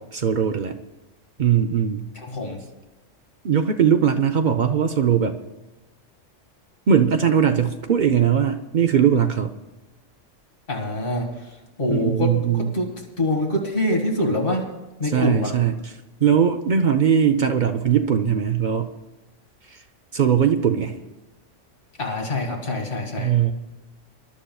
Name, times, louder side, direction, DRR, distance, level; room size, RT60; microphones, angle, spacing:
voice 1, 0.1-0.8 1.4-2.1 3.4-5.4 6.9-9.5 11.9-12.8 15.0-18.9 19.7-19.8 20.1-20.9 23.2-23.5, right 8 dB, 50° right, 6 dB, 0.6 m, -20 dB
voice 2, 2.3-2.6 10.7-11.3 11.8-12.3 12.7-12.9 13.2-14.6 15.0-15.5 22.0-23.3, left 1 dB, 45° left, 0 dB, 2.2 m, -24 dB
25.0 x 11.5 x 2.3 m, 1.1 s
omnidirectional pair, 1.3 m